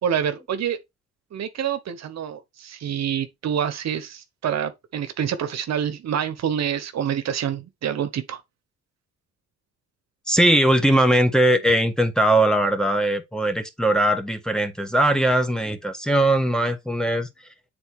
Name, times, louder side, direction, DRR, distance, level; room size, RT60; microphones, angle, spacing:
voice 1, 0.0-0.8 1.3-8.4, right 8 dB, 60° right, 1.0 m, -27 dB
voice 2, 10.3-17.3, right 1 dB, ahead, 1.5 m, -20 dB
8.1 x 3.8 x 4.6 m
cardioid pair, 90°, 30 cm